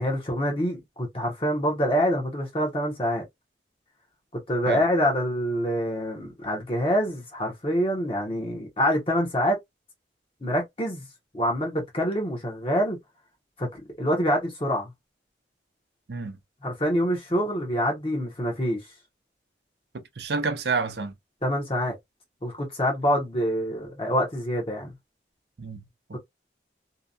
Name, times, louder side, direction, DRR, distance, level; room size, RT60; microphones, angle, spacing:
voice 1, 0.0-3.2 4.3-9.6 10.4-11.0 11.3-13.0 13.6-14.9 16.6-18.8 21.4-22.0 22.4-24.9, equal, 30° left, 0.8 m, -26 dB
voice 2, 20.2-21.1 25.6-26.2, right 4 dB, 65° right, 0.6 m, -29 dB
2.8 x 2.2 x 2.4 m
head